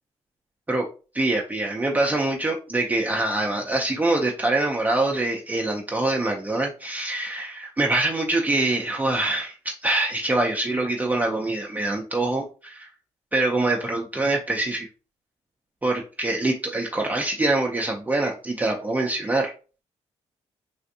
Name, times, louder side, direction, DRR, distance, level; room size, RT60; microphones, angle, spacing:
voice 1, 1.1-12.9 13.3-14.9 15.8-19.5, right 2 dB, 15° right, -1 dB, 0.5 m, -24 dB
3.4 x 2.4 x 2.7 m, 0.35 s
supercardioid pair, 70°, 12 cm